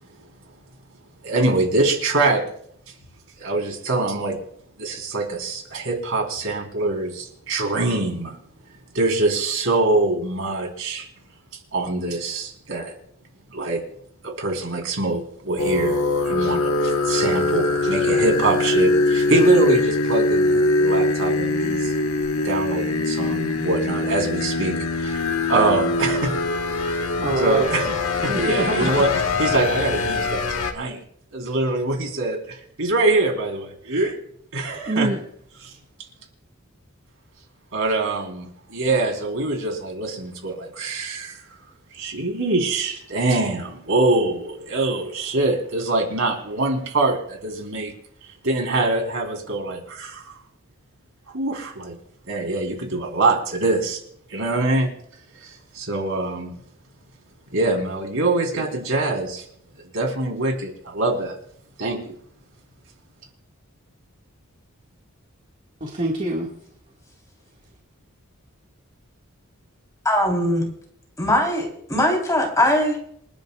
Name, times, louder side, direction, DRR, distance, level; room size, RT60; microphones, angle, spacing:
voice 1, 1.2-2.4 3.4-4.4 4.8-8.4 8.9-11.1 11.7-12.9 13.5-13.8 14.2-21.9 22.4-26.3 26.8-27.0 27.4-31.0 31.3-34.2 34.5-35.1 35.6-35.7 37.7-41.4 41.9-47.9 48.4-50.3 51.3-51.9 52.3-54.0 54.3-54.9 55.4-56.6 57.5-59.4 59.8-61.3 61.8-62.1, right 2 dB, 65° right, 4.0 m, -24 dB
sound 1, 15.6-30.7, left 2 dB, 85° left, 1.3 m, -22 dB
voice 2, 26.9-27.9 28.3-29.0 34.9-35.2 65.8-66.5, right 2 dB, 35° right, 2.0 m, -26 dB
voice 3, 70.0-70.6 71.2-73.0, left 1 dB, 15° left, 3.7 m, -20 dB
28.5 x 10.5 x 2.4 m
head